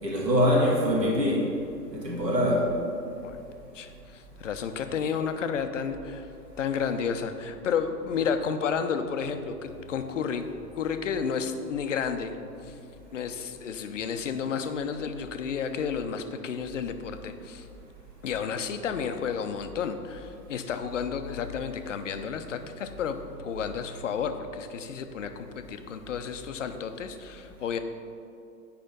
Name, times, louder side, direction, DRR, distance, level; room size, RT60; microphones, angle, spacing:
voice 1, 0.0-1.5 1.9-2.8, equal, 85° right, -2 dB, 2.0 m, -24 dB
voice 2, 3.7-6.3 6.6-10.5 10.7-12.3 12.6-12.7 13.1-17.7 18.2-27.8, left 6 dB, 50° left, 8 dB, 0.6 m, -31 dB
8.0 x 5.1 x 5.1 m, 2.5 s
figure-of-eight pair, 115°, 48 cm